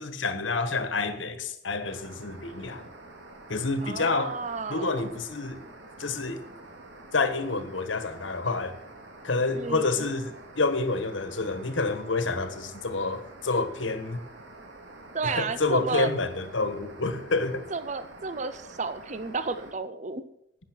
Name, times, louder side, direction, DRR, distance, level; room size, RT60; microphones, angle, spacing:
voice 1, 0.0-2.9 3.5-4.4 4.7-5.6 6.0-6.4 7.1-8.8 9.2-14.2 15.2-17.6, left 3 dB, 90° left, 1.4 m, -28 dB
sound 1, 1.8-19.7, right 2 dB, 85° right, 2.2 m, -48 dB
voice 2, 3.8-5.0 9.5-10.0 15.1-16.1 17.7-20.2, right 4 dB, 40° right, 0.7 m, -32 dB
13.0 x 9.4 x 6.2 m
head